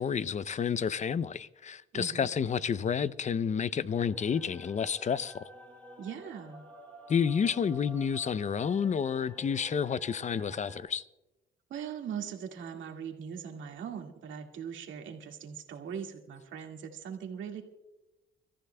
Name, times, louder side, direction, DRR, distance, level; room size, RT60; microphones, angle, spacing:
voice 1, 0.0-5.5 7.1-11.0, left 7 dB, 35° left, 0.5 m, -30 dB
voice 2, 1.9-2.3 6.0-6.7 11.7-17.6, right 7 dB, 75° right, 2.0 m, -40 dB
sound 1, 4.0-10.8, right 1 dB, 10° left, 5.0 m, -51 dB
30.0 x 14.0 x 2.2 m
cardioid pair, 90°, 20 cm